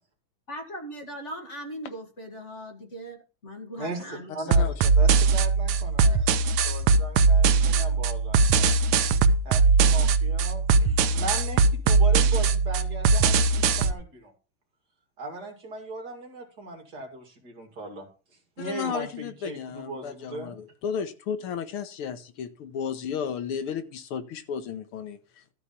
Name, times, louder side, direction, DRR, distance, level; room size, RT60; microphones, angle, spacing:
voice 1, 0.5-4.5, equal, 35° left, 2.0 m, -39 dB
voice 2, 3.8-6.3 6.7-8.8 9.4-14.3 15.2-18.1 18.6-20.5, right 2 dB, 45° right, 2.7 m, -38 dB
sound 1, 4.5-13.9, right 4 dB, 80° right, 1.7 m, -21 dB
voice 3, 18.6-25.5, left 7 dB, 80° left, 1.9 m, -33 dB
13.0 x 4.8 x 6.9 m
omnidirectional pair, 2.4 m